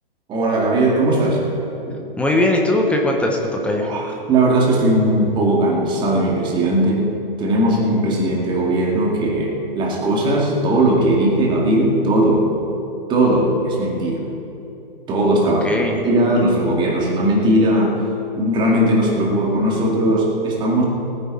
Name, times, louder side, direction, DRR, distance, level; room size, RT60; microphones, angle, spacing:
voice 1, 0.3-1.5 1.9-2.0 3.8-7.1 7.4-12.5 13.1-14.2 15.1-18.0 18.4-20.9, right 1 dB, 15° right, -3 dB, 2.2 m, -18 dB
voice 2, 2.2-3.9 15.6-16.0, left 1 dB, 5° left, 1 dB, 0.6 m, -19 dB
18.5 x 9.7 x 4.8 m, 3.0 s
hypercardioid pair, 150°, 30 cm